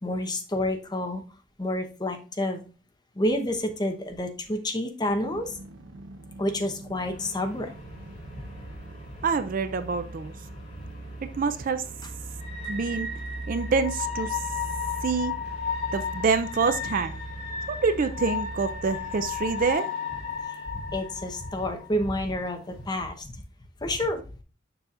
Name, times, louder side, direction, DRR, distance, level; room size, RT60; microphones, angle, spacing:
voice 1, 0.0-1.2 1.6-2.7 3.2-5.6 6.4-7.7 10.8-10.9 20.9-23.4 23.8-24.2, left 1 dB, 20° left, 5 dB, 0.9 m, -29 dB
sound 1, 5.0-19.7, right 2 dB, 65° right, 0.7 m, -41 dB
sound 2, 7.0-22.9, left 7 dB, 35° left, 2.3 m, -36 dB
voice 2, 9.2-10.3 11.4-11.8 12.7-13.1 13.5-14.4 15.0-15.3 15.9-17.2 17.7-19.9, right 5 dB, 45° right, 11 dB, 0.4 m, -26 dB
6.8 x 5.7 x 2.5 m, 0.34 s
head